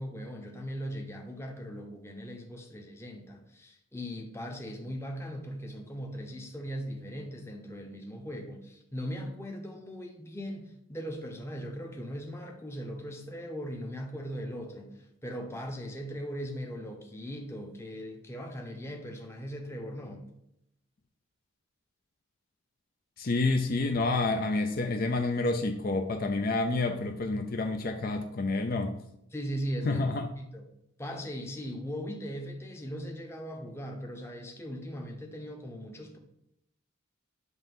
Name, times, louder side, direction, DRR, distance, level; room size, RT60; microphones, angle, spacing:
voice 1, 0.0-20.2 29.3-30.0 30.4-30.7 31.0-36.2, equal, 15° left, 2 dB, 0.8 m, -39 dB
voice 2, 23.2-28.9 29.9-30.3, left 3 dB, 45° left, 5 dB, 0.5 m, -28 dB
7.9 x 2.7 x 5.3 m, 0.80 s
head